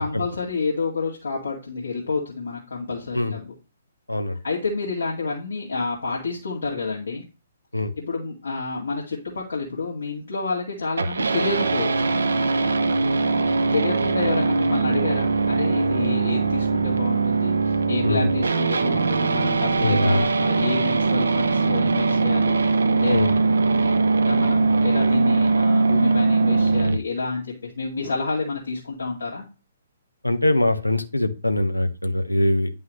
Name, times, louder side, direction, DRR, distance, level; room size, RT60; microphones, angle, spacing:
voice 1, 0.0-3.5 4.4-7.2 8.0-12.1 13.7-23.4 24.2-29.4, left 4 dB, 70° left, -4 dB, 2.2 m, -29 dB
sound 1, 11.0-27.0, right 4 dB, 70° right, 0.8 m, -21 dB
voice 2, 19.8-20.2 23.1-23.3 30.2-32.7, left 1 dB, 90° left, 8 dB, 1.1 m, -22 dB
10.0 x 5.4 x 3.1 m, 0.32 s
figure-of-eight pair, 130°, 0 cm